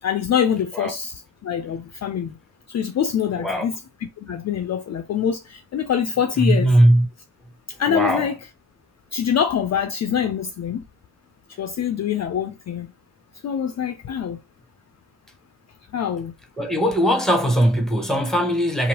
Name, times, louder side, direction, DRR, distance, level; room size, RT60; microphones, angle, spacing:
voice 1, 0.0-2.4 2.7-3.7 4.0-6.8 7.8-8.4 9.1-10.8 11.6-12.9 13.4-14.4 15.9-16.3, left 8 dB, 45° left, 0.4 m, -24 dB
voice 2, 3.3-3.7 6.4-7.1 7.9-8.3 16.6-18.9, equal, ahead, 1.0 m, -19 dB
2.9 x 2.0 x 2.9 m
supercardioid pair, 50°, 38 cm